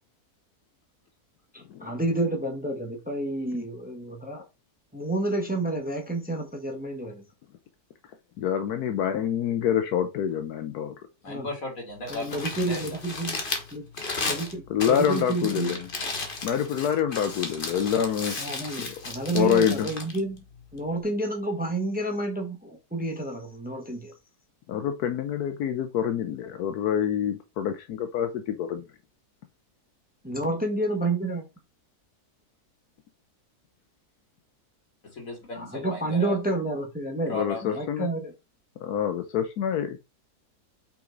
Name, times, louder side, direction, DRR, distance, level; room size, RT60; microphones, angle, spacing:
voice 1, 1.5-4.4 4.9-7.2 11.3-11.5 12.1-13.4 13.7-13.8 14.3-14.6 14.9-15.7 18.4-20.4 20.7-24.1 30.2-31.4 35.5-37.3 37.6-38.3, right 2 dB, 5° right, 1.3 m, -29 dB
voice 2, 8.4-10.9 14.7-15.9 16.4-18.3 18.8-19.0 19.3-19.9 24.7-28.9 37.3-38.1 38.8-40.0, left 8 dB, 80° left, 1.2 m, -26 dB
voice 3, 11.2-13.0 35.1-36.4 37.3-37.7, left 2 dB, 60° left, 2.8 m, -36 dB
Crumpling crinkling, 11.9-21.0, left 3 dB, 35° left, 1.5 m, -35 dB
5.8 x 5.1 x 3.9 m
omnidirectional pair, 1.6 m